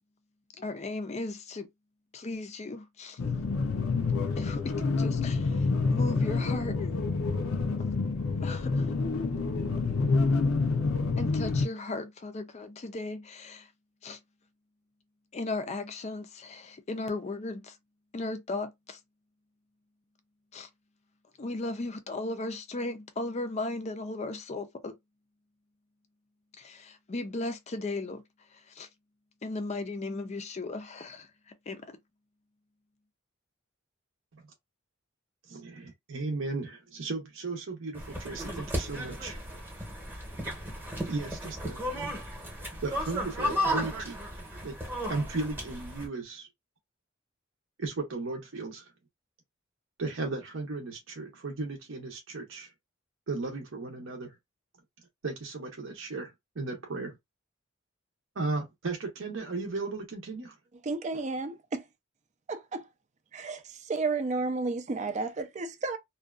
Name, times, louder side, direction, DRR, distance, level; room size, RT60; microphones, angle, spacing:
voice 1, 0.6-1.7 2.1-3.2 4.4-7.0 8.4-9.0 11.2-13.7 14.0-14.2 15.3-17.8 18.1-19.0 20.5-20.7 21.4-25.0 26.6-28.2 28.5-28.9 29.4-31.8, left 2 dB, 30° left, 0.4 m, -36 dB
sound 1, 3.2-11.7, left 4 dB, 80° left, 0.6 m, -28 dB
voice 2, 35.5-39.4 41.0-41.9 42.8-44.2 44.6-44.8 45.1-46.5 47.8-48.9 50.0-52.7 53.3-54.3 55.2-57.2 58.4-60.5, right 3 dB, 70° right, 0.7 m, -35 dB
sound 2, 37.9-46.1, equal, 10° right, 0.9 m, -34 dB
voice 3, 60.8-61.8 62.5-62.8 63.3-63.6 63.9-66.0, right 3 dB, 35° right, 0.4 m, -32 dB
2.5 x 2.2 x 2.3 m
head